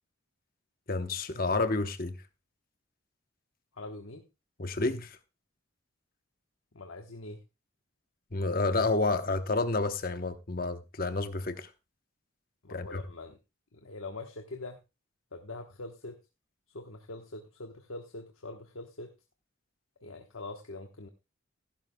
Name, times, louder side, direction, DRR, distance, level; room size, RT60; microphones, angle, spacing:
voice 1, 0.9-2.2 4.6-5.2 8.3-11.7 12.7-13.0, left 3 dB, 45° left, 0.9 m, -30 dB
voice 2, 3.7-4.3 6.7-7.4 12.6-13.4 13.7-14.8 15.3-16.1 16.7-19.1 20.0-21.1, left 2 dB, 85° left, 1.1 m, -43 dB
15.0 x 12.0 x 2.2 m
head